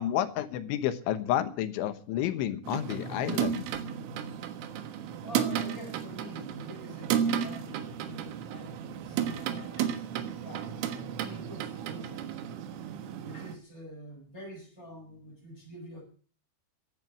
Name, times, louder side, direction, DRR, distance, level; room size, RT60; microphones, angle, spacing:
voice 1, 0.0-3.7, left 11 dB, 80° left, 3.5 m, -30 dB
sound 1, 2.7-13.6, right 9 dB, 85° right, 4.0 m, -33 dB
voice 2, 5.2-9.9 10.4-10.8 11.2-12.3 13.2-16.0, equal, 15° left, 7.7 m, -46 dB
15.0 x 11.0 x 7.5 m
omnidirectional pair, 5.6 m